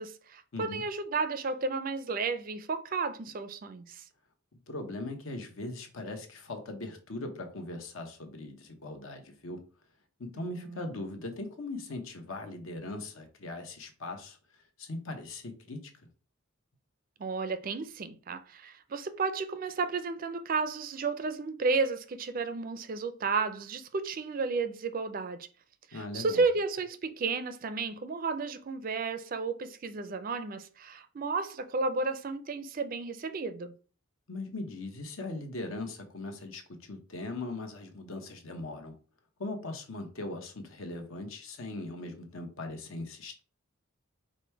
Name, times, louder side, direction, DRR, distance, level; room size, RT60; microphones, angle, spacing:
voice 1, 0.0-4.0 10.5-10.9 17.2-25.5 25.9-33.7, right 4 dB, 40° right, 0.4 m, -32 dB
voice 2, 0.5-0.8 4.7-9.6 10.2-14.4 14.8-15.9 25.9-26.4 34.3-38.9 39.4-43.4, left 2 dB, 70° left, 0.9 m, -40 dB
5.1 x 2.1 x 4.5 m
head